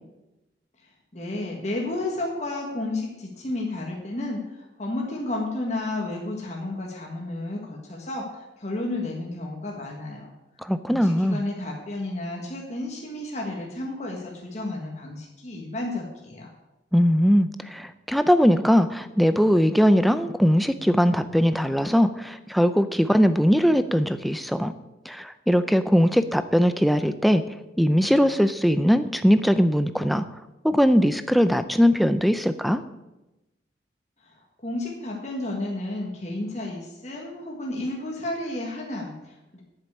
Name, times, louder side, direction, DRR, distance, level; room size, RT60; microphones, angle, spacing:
voice 1, 1.1-10.3 10.9-16.5 34.2-34.3 34.6-39.6, left 2 dB, 40° left, -1 dB, 1.6 m, -32 dB
voice 2, 10.6-11.4 16.9-24.7 25.1-27.4 27.8-30.2 30.6-32.8, equal, ahead, 11 dB, 0.5 m, -20 dB
8.7 x 7.5 x 8.3 m, 1.0 s
head